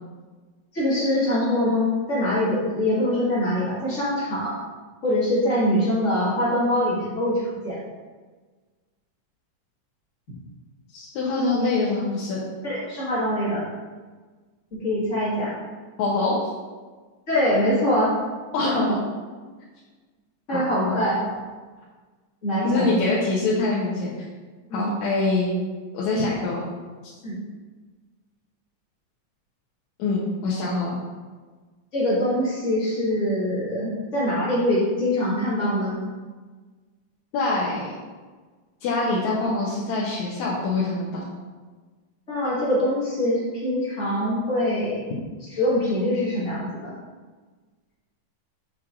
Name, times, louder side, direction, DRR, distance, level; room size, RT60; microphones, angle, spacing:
voice 1, 0.7-4.6 5.0-7.8 12.6-13.7 14.7-15.6 17.3-18.2 18.7-18.9 20.5-21.4 22.4-23.0 24.7-24.9 27.2-27.4 31.9-36.0 42.3-45.0 45.5-47.0, left 1 dB, 35° left, -8 dB, 1.3 m, -23 dB
voice 2, 10.9-12.4 16.0-16.5 18.5-18.8 20.5-21.0 22.6-24.1 24.7-25.5 25.9-26.7 30.0-31.0 37.3-37.9 38.8-41.2, left 3 dB, 70° left, -6 dB, 2.0 m, -24 dB
7.2 x 6.0 x 2.5 m, 1.4 s
omnidirectional pair, 3.6 m